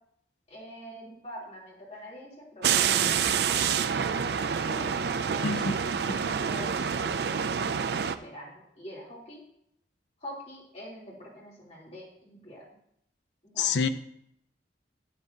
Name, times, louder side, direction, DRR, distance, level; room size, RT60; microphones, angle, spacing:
voice 1, 0.5-4.3 4.7-5.6 6.0-9.4 10.2-12.6 13.4-13.8, equal, 40° left, -5 dB, 3.1 m, -44 dB
sound 1, 2.6-8.2, right 7 dB, 65° right, 0.4 m, -27 dB
voice 2, 5.4-5.8 13.6-13.9, left 5 dB, 80° left, 11 dB, 0.5 m, -27 dB
12.0 x 8.5 x 2.8 m, 0.72 s
head